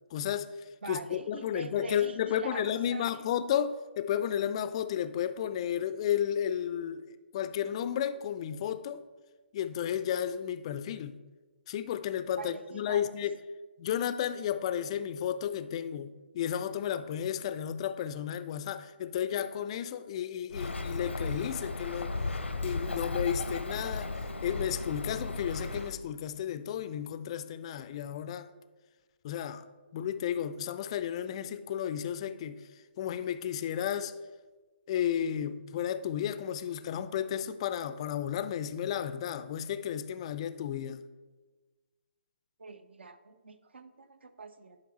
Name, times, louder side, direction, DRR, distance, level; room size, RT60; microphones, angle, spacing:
voice 1, 0.1-0.5 0.9-7.0 7.3-9.0 9.5-11.2 11.7-13.4 13.8-22.1 22.6-24.2 24.4-28.5 29.2-29.6 29.9-32.6 33.0-34.1 34.9-41.0, left 9 dB, 30° left, 13 dB, 0.3 m, -33 dB
voice 2, 0.8-3.3 12.4-13.2 42.6-44.8, right 4 dB, 70° right, 11 dB, 0.6 m, -44 dB
Bird, 20.5-25.9, left 3 dB, 85° left, 0.6 m, -35 dB
10.0 x 5.0 x 3.1 m, 1.3 s
figure-of-eight pair, 140°, 6 cm